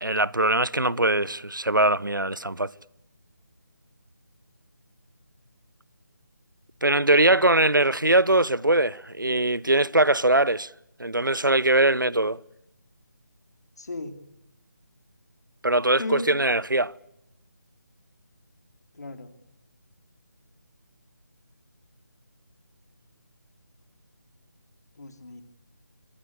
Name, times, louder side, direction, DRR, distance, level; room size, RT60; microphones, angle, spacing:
voice 1, 0.0-2.7 6.8-10.7 11.0-12.4 15.6-16.9, right 2 dB, 90° right, 1.0 m, -21 dB
voice 2, 13.8-14.2 16.0-16.4 18.9-19.3 25.0-25.4, left 2 dB, 55° left, 3.9 m, -36 dB
26.5 x 24.5 x 8.4 m
figure-of-eight pair, 155°, 10 cm